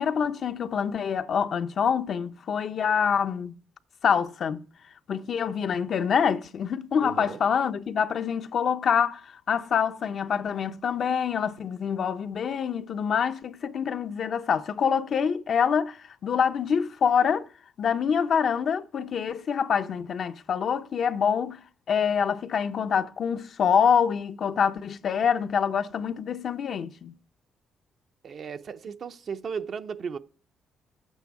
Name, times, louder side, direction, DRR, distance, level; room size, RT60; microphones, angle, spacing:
voice 1, 0.0-3.5 4.0-4.6 5.1-17.5 17.8-21.6 21.9-27.1, left 7 dB, 55° left, 0.6 m, -26 dB
voice 2, 7.0-7.4 28.2-30.2, right 6 dB, 55° right, 0.6 m, -35 dB
9.7 x 8.3 x 4.7 m
cardioid pair, 90°, 0 cm